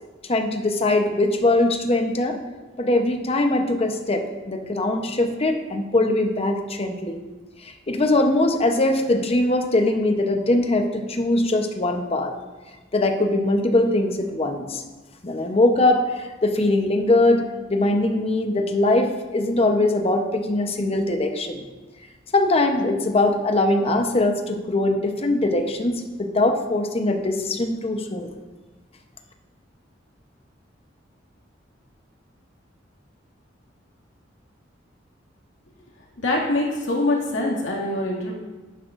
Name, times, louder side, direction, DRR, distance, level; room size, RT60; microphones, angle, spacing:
voice 1, 0.3-2.4 2.8-7.2 7.6-12.3 12.9-14.8 15.2-17.4 17.7-21.6 22.3-28.3, left 2 dB, 30° left, 4 dB, 0.8 m, -21 dB
voice 2, 36.2-38.3, left 2 dB, 90° left, -2 dB, 2.2 m, -24 dB
11.0 x 10.0 x 2.5 m, 1.2 s
head